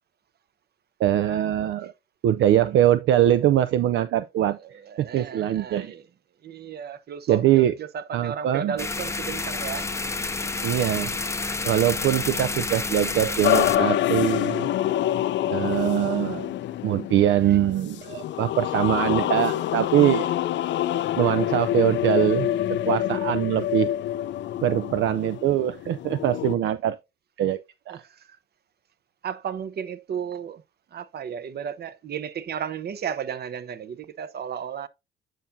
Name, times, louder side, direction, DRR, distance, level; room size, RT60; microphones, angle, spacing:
voice 1, 1.0-1.9 2.2-5.9 7.3-7.7 8.1-8.7 10.6-11.2 11.6-14.7 15.5-16.5 16.8-20.3 21.2-22.5 22.8-23.9 24.6-27.0 27.4-27.6 27.9-28.0, right 11 dB, 70° right, 0.5 m, -22 dB
voice 2, 4.5-6.0 6.4-9.9 17.5-17.6 27.9-28.4 29.2-30.6 30.9-34.9, right 8 dB, 55° right, 0.8 m, -34 dB
sound 1, 8.8-13.8, left 3 dB, 15° left, 0.5 m, -29 dB
sound 2, 13.4-26.6, left 12 dB, 65° left, 0.4 m, -26 dB
9.1 x 5.9 x 2.7 m
cardioid pair, 90°, 20 cm